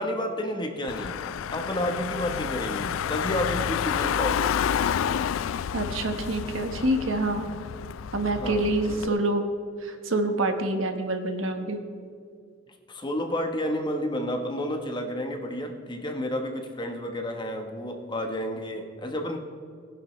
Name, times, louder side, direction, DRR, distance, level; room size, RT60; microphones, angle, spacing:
voice 1, 0.0-4.6 8.3-9.2 12.9-19.4, left 1 dB, 25° left, 4 dB, 1.0 m, -31 dB
Car / Engine, 0.9-9.1, left 8 dB, 80° left, 0.3 m, -30 dB
voice 2, 5.7-7.5 8.1-9.4 9.8-11.8, right 2 dB, 80° right, 6 dB, 1.2 m, -26 dB
19.0 x 10.5 x 3.1 m, 2.3 s
head